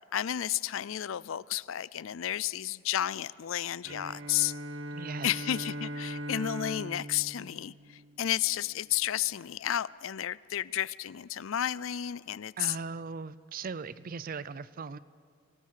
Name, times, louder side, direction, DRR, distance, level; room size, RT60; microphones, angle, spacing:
voice 1, 0.1-4.6 5.2-12.8, left 11 dB, 90° left, 0.4 m, -32 dB
Bowed string instrument, 3.8-8.6, equal, 90° right, 1.2 m, -40 dB
voice 2, 4.9-5.3 12.6-15.0, right 5 dB, 45° right, 0.5 m, -39 dB
25.5 x 18.0 x 6.6 m
head